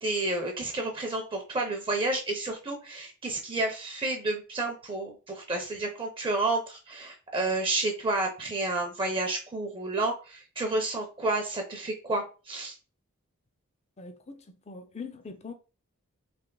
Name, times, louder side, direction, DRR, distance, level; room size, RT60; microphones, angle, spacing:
voice 1, 0.0-12.7, right 2 dB, 25° right, 0.7 m, -30 dB
voice 2, 14.0-15.5, left 4 dB, 30° left, 0.5 m, -42 dB
3.4 x 3.0 x 3.8 m
head